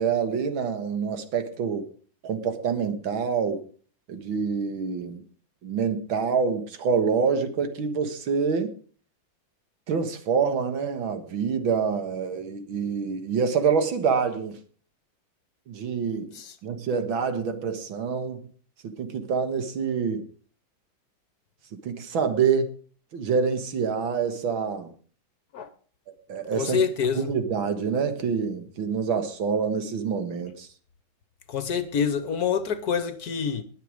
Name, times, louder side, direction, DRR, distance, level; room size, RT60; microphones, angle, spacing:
voice 1, 0.0-1.9 2.2-3.6 4.1-5.2 5.6-8.7 9.9-14.6 15.7-16.3 16.6-18.4 18.8-20.2 21.8-22.7 23.1-24.9 26.1-26.8 27.2-30.7, right 6 dB, 80° right, 2.3 m, -26 dB
voice 2, 26.5-27.3 31.5-33.6, left 7 dB, 55° left, 1.3 m, -26 dB
20.0 x 6.8 x 5.0 m
omnidirectional pair, 2.1 m